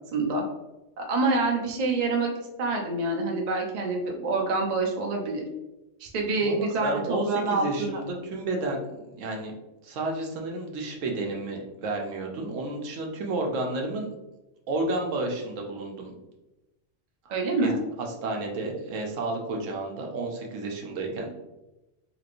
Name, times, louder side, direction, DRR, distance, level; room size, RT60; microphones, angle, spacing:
voice 1, 0.1-0.4 1.0-2.3 2.6-5.4 6.0-8.0 17.3-17.8, right 3 dB, 50° right, 1 dB, 0.5 m, -26 dB
voice 2, 6.4-9.5 9.8-14.1 14.7-16.1 17.3-17.4 17.6-17.8 18.2-21.3, right 2 dB, 80° right, 1 dB, 1.0 m, -31 dB
3.0 x 2.9 x 2.5 m, 1.0 s
omnidirectional pair, 1.3 m